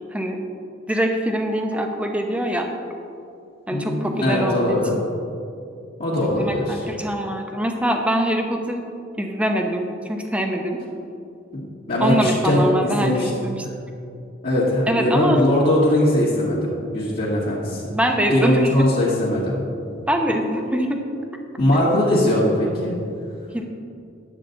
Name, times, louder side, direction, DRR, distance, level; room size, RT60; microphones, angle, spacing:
voice 1, 0.9-2.7 3.7-4.8 6.3-8.8 9.2-10.8 12.0-13.6 14.9-15.4 17.9-18.7 20.1-21.0 23.5-23.6, equal, 5° right, 3 dB, 0.8 m, -23 dB
voice 2, 3.7-4.9 6.0-6.8 11.5-11.6 11.9-13.3 13.6-13.7 14.4-17.8 18.3-19.6 21.6-23.0, left 1 dB, 50° left, -10 dB, 1.7 m, -20 dB
9.9 x 8.3 x 3.9 m, 2.5 s
head